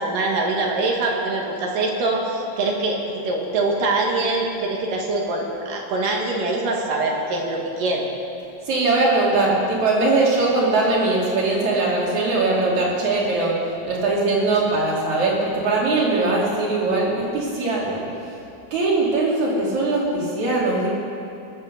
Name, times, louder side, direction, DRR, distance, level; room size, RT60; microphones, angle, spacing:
voice 1, 0.0-8.1, right 2 dB, 80° right, -1 dB, 3.3 m, -24 dB
voice 2, 8.7-13.5 13.8-18.1 18.7-20.9, right 2 dB, 60° right, -4 dB, 3.8 m, -21 dB
22.5 x 7.4 x 6.7 m, 2.6 s
omnidirectional pair, 3.9 m